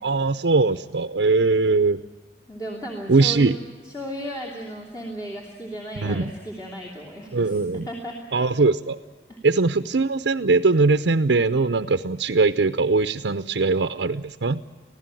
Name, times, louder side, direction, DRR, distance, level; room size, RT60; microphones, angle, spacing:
voice 1, 0.0-2.0 3.1-3.6 6.0-6.2 7.3-7.9 8.3-9.0 9.4-14.6, right 3 dB, 90° right, 9 dB, 0.7 m, -21 dB
voice 2, 2.5-3.5 3.8-8.2 9.3-9.4, equal, 20° left, -2 dB, 2.9 m, -35 dB
25.5 x 16.0 x 9.1 m, 1.5 s
head